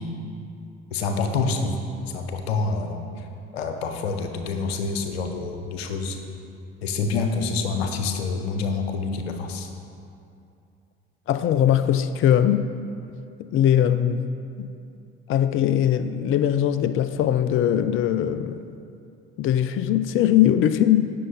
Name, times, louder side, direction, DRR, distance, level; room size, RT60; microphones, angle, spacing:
voice 1, 0.9-1.8 2.1-3.3 3.5-6.2 6.8-9.7, left 4 dB, 75° left, 6 dB, 1.0 m, -27 dB
voice 2, 11.3-12.6 13.4-14.3 14.6-14.7 15.3-18.6 19.4-21.1, left 10 dB, 40° left, 12 dB, 0.5 m, -21 dB
17.0 x 6.7 x 3.9 m, 2.5 s
figure-of-eight pair, 55°, 31 cm